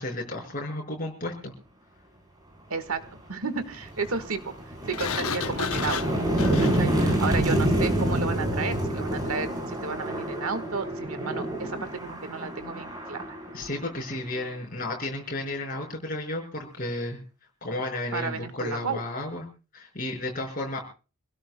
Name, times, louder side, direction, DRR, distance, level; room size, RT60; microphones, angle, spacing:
voice 1, 0.0-1.5 13.5-17.2 17.6-19.5 19.7-20.8, left 2 dB, 40° left, 1 dB, 5.4 m, -33 dB
voice 2, 2.7-3.0 3.3-4.5 4.9-6.0 6.6-13.4 18.1-19.0, right 4 dB, 85° right, 11 dB, 1.5 m, -32 dB
sound 1, 3.0-3.2 3.6-14.4, right 1 dB, 20° right, 4.1 m, -28 dB
Sliding door, 4.9-7.7, left 6 dB, 80° left, 0.8 m, -33 dB
28.0 x 16.5 x 2.2 m, 0.34 s
head